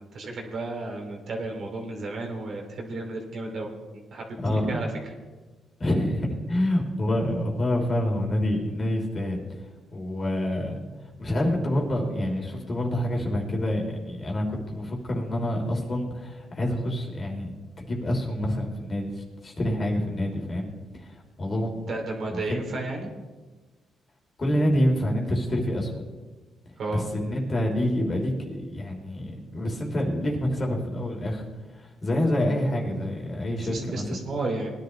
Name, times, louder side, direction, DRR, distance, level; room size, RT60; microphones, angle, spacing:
voice 1, 0.1-4.9 21.9-23.1 26.8-27.0 33.6-34.7, right 2 dB, 55° right, 1 dB, 2.8 m, -33 dB
voice 2, 4.4-4.8 5.8-9.4 9.9-20.7 20.9-21.8 22.3-22.6 24.4-26.0 26.9-31.5 31.7-34.1, left 1 dB, 35° left, 0 dB, 3.1 m, -27 dB
19.5 x 10.5 x 3.2 m, 1.3 s
cardioid pair, 90°, 0 cm